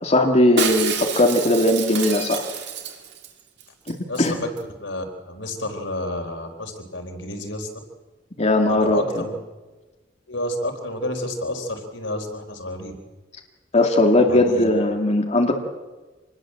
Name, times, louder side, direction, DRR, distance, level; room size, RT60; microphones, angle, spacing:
voice 1, 0.0-2.4 3.9-4.4 8.4-9.2 13.7-15.6, left 1 dB, 35° left, 2 dB, 2.2 m, -19 dB
Shatter, 0.6-3.3 3.6-3.7 3.9-4.3 4.6-4.7, right 6 dB, 65° right, 3.1 m, -28 dB
voice 2, 4.1-7.7 8.6-9.3 10.3-12.9 14.3-14.7, left 1 dB, 85° left, 4 dB, 4.4 m, -30 dB
26.5 x 20.5 x 7.7 m, 1.2 s
head